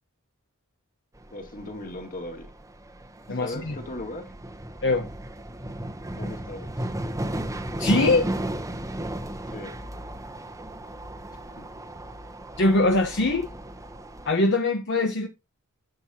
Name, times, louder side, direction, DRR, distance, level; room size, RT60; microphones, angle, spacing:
sound 1, 1.1-14.3, right 1 dB, 15° right, 0.9 m, -35 dB
voice 1, 1.3-2.5 3.3-4.2 6.2-6.9 9.5-9.7 11.6-11.7, left 1 dB, 40° left, 2.3 m, -38 dB
voice 2, 3.3-3.8 4.8-5.1 7.8-8.3 12.6-13.5 14.2-15.3, left 2 dB, 60° left, 1.0 m, -22 dB
11.5 x 7.6 x 2.9 m
head